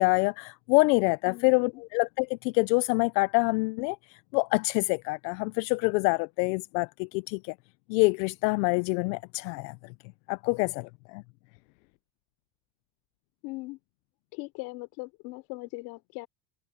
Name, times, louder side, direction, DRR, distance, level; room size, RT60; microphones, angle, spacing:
voice 1, 0.0-4.0 4.3-7.4 7.9-9.7 10.3-11.2, left 27 dB, 85° left, 0.6 m, -26 dB
voice 2, 1.2-1.8 13.4-13.8 14.3-16.3, left 23 dB, 60° left, 3.5 m, -40 dB
cardioid pair, 170°, 50 cm